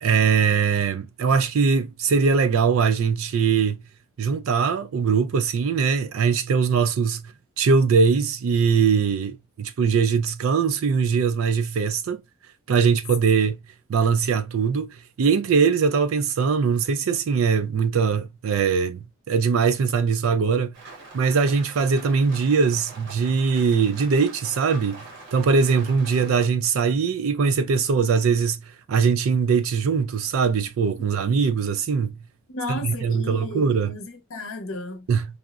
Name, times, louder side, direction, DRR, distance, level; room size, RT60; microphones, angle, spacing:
voice 1, 0.0-3.8 4.2-7.2 7.6-12.2 12.7-13.6 13.9-14.9 15.2-20.8 21.1-25.0 25.3-28.6 28.9-32.2 32.7-34.0 35.1-35.3, right 5 dB, 75° right, 0.4 m, -21 dB
Rain, 20.7-26.5, right 3 dB, 55° right, 0.8 m, -44 dB
voice 2, 32.5-35.1, left 2 dB, 70° left, 0.7 m, -34 dB
3.6 x 2.0 x 2.3 m
head